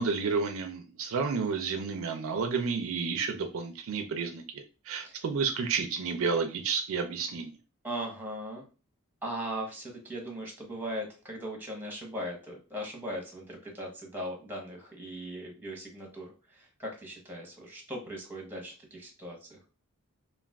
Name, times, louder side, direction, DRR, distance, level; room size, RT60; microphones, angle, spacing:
voice 1, 0.0-7.5, right 5 dB, 65° right, 6 dB, 0.4 m, -31 dB
voice 2, 7.8-8.6 9.2-19.6, equal, 10° right, 0 dB, 0.8 m, -39 dB
2.3 x 2.3 x 3.3 m, 0.33 s
head